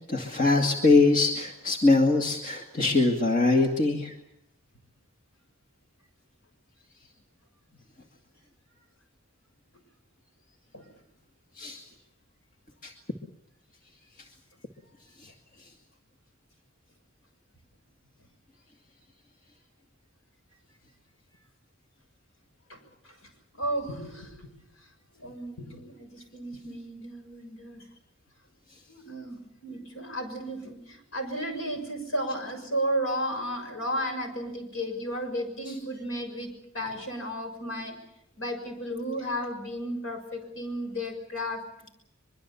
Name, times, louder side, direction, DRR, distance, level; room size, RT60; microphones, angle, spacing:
voice 1, 0.1-4.1 11.6-11.8 12.8-12.9 15.2-15.3, left 3 dB, 40° left, 2 dB, 2.1 m, -22 dB
voice 2, 23.5-24.3 25.2-27.8 28.9-38.0 38.4-41.6, equal, 75° left, 5 dB, 6.5 m, -33 dB
23.5 x 23.5 x 7.1 m, 0.79 s
head